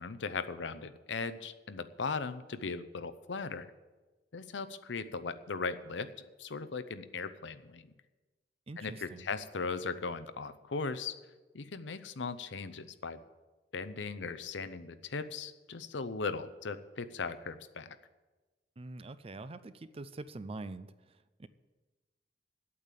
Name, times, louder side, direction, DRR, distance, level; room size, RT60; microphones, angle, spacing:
voice 1, 0.0-3.7 4.3-6.1 6.4-7.9 8.8-11.1 11.5-13.2 13.7-18.0, left 4 dB, 85° left, 12 dB, 0.7 m, -38 dB
voice 2, 8.7-9.3 18.8-21.5, right 2 dB, 35° right, 13 dB, 0.5 m, -45 dB
8.6 x 8.5 x 9.1 m, 1.2 s
head